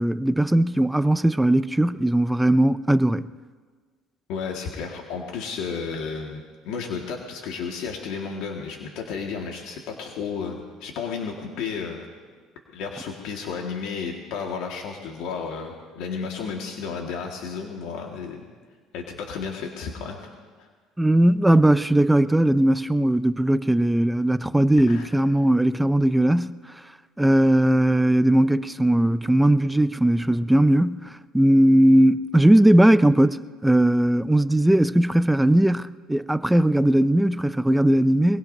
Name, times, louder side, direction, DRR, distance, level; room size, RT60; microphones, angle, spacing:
voice 1, 0.0-3.2 21.0-26.6 27.2-38.4, right 1 dB, 5° right, 0.3 m, -19 dB
voice 2, 4.3-12.1 12.7-18.5 18.9-20.3 20.6-20.7 24.8-25.1, left 5 dB, 70° left, 1.8 m, -32 dB
22.0 x 22.0 x 2.7 m
cardioid pair, 125°, 0 cm